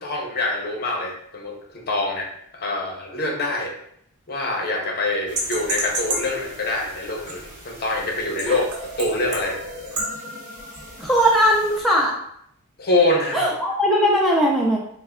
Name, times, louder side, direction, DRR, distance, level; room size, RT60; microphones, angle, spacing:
voice 1, 0.0-2.3 2.5-3.7 4.3-8.6 9.0-9.6 12.8-13.5, left 2 dB, 45° left, 0 dB, 0.7 m, -25 dB
sound 1, 5.3-11.8, right 1 dB, 75° right, 0.8 m, -32 dB
voice 2, 11.0-12.1 13.3-14.8, equal, ahead, -4 dB, 0.3 m, -19 dB
3.3 x 2.1 x 3.5 m, 0.71 s
head